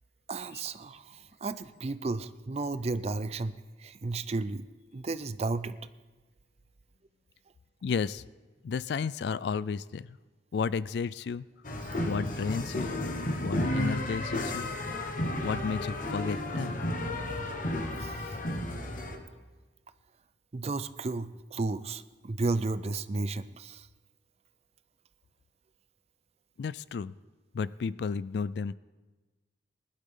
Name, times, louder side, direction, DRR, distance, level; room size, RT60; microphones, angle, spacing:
voice 1, 0.3-1.0 1.4-4.6 4.9-5.8 18.0-18.1 20.5-23.9, right 3 dB, 35° right, 13 dB, 0.4 m, -33 dB
voice 2, 7.8-8.2 8.6-10.2 10.5-11.4 12.0-13.0 13.4-14.7 15.4-16.8 26.6-27.1 27.5-28.7, left 5 dB, 60° left, 18 dB, 0.3 m, -32 dB
sound 1, 11.6-19.2, left 1 dB, 45° left, 1.3 m, -33 dB
20.5 x 11.5 x 3.7 m, 1.2 s
head